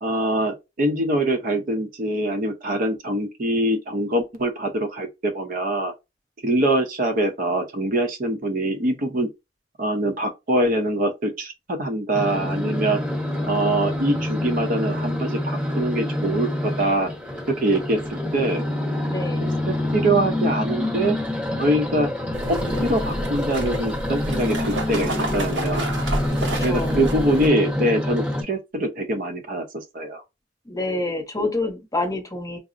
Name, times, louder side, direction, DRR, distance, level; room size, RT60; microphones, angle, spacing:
voice 1, 0.0-5.9 6.4-9.3 9.8-13.0 13.5-17.1 17.5-18.0 18.3-18.6 19.4-21.2 21.6-22.1 22.5-25.9 26.6-30.2, right 1 dB, 50° right, 0.7 m, -24 dB
sound 1, 12.1-28.4, left 1 dB, 5° right, 0.9 m, -27 dB
voice 2, 19.1-19.6 26.4-27.1 30.6-32.6, left 2 dB, 20° left, 0.8 m, -28 dB
sound 2, 22.3-27.5, right 1 dB, 75° right, 0.8 m, -29 dB
4.7 x 2.0 x 2.5 m
head